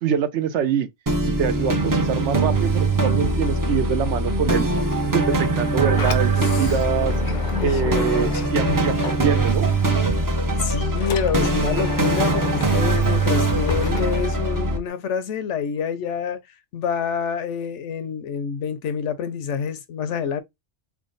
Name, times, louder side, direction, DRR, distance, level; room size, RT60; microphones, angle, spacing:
voice 1, 0.0-0.9 1.3-4.7 5.1-7.1 7.6-9.7, right 8 dB, 70° right, 0.9 m, -25 dB
sound 1, 1.1-14.8, right 2 dB, 25° right, 0.4 m, -22 dB
Sliding door, 5.5-9.8 10.1-14.9, left 6 dB, 55° left, 0.6 m, -34 dB
voice 2, 6.4-6.8 7.5-8.8 10.6-16.4 16.7-20.4, left 7 dB, 75° left, 0.9 m, -27 dB
3.6 x 2.1 x 3.7 m
omnidirectional pair, 1.3 m